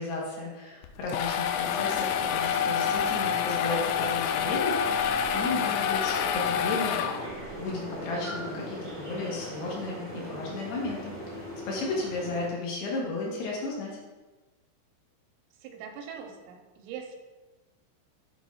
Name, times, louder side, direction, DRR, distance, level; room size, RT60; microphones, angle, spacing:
voice 1, 0.0-7.0 7.6-13.9, left 3 dB, 65° left, -3 dB, 3.1 m, -34 dB
sound 1, 0.8-7.5, left 8 dB, 85° left, 2.7 m, -28 dB
sound 2, 1.6-12.5, right 1 dB, 25° right, 0.9 m, -39 dB
sound 3, 7.1-7.6, right 1 dB, 60° right, 1.3 m, -50 dB
voice 2, 15.6-17.2, right 7 dB, 85° right, 4 dB, 3.4 m, -42 dB
8.6 x 4.0 x 5.4 m, 1.2 s
omnidirectional pair, 5.8 m